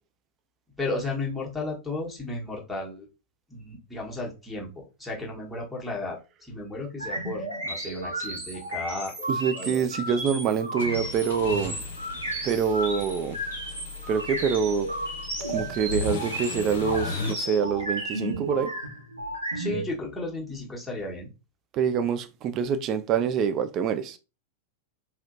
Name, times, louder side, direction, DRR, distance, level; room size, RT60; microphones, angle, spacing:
voice 1, 0.8-3.1 3.5-9.8 19.5-21.3, left 2 dB, 5° left, 1.1 m, -34 dB
sound 1, 7.0-19.8, right 1 dB, 80° right, 1.4 m, -33 dB
voice 2, 9.3-11.8 12.4-13.4 14.1-14.9 15.5-18.7 21.7-24.2, right 7 dB, 35° right, 0.3 m, -26 dB
sound 2, 10.8-17.3, left 5 dB, 60° left, 0.7 m, -37 dB
3.1 x 2.8 x 2.5 m
figure-of-eight pair, 90°, 0 cm